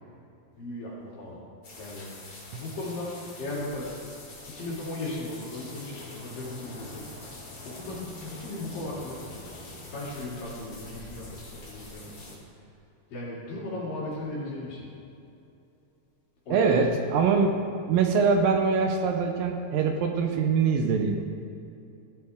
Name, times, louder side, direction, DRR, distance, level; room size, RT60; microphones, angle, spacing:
voice 1, 0.5-1.4 1.8-2.1 2.6-3.9 4.5-7.1 7.6-12.7 13.1-14.9 16.5-16.7, left 2 dB, 55° left, -6 dB, 4.3 m, -37 dB
sound 1, 1.6-12.4, left 2 dB, 35° left, 2.7 m, -45 dB
voice 2, 16.5-17.6 17.9-21.1, right 5 dB, 75° right, 4 dB, 2.1 m, -23 dB
16.0 x 11.5 x 3.6 m, 2.7 s
omnidirectional pair, 4.9 m